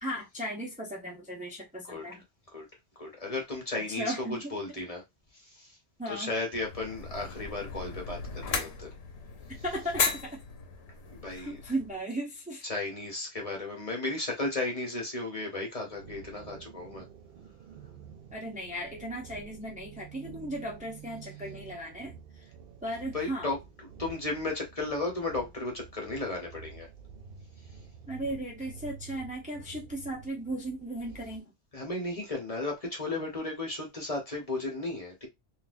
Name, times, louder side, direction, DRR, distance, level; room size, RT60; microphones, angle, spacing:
voice 1, 0.0-2.2 3.9-4.5 6.0-6.3 9.6-10.4 11.3-12.6 18.3-22.5 22.8-23.5 28.1-31.5, right 1 dB, 10° right, 0.7 m, -36 dB
voice 2, 1.9-2.2 2.5-2.7 3.0-5.0 5.3-5.8 6.1-8.9 11.1-11.6 12.6-17.1 23.1-23.6 24.0-26.9 31.7-35.3, left 2 dB, 35° left, 1.0 m, -34 dB
sound 1, 6.6-12.0, left 5 dB, 85° left, 1.0 m, -36 dB
sound 2, 15.9-31.4, right 6 dB, 65° right, 0.7 m, -49 dB
3.9 x 2.4 x 2.5 m
omnidirectional pair, 1.1 m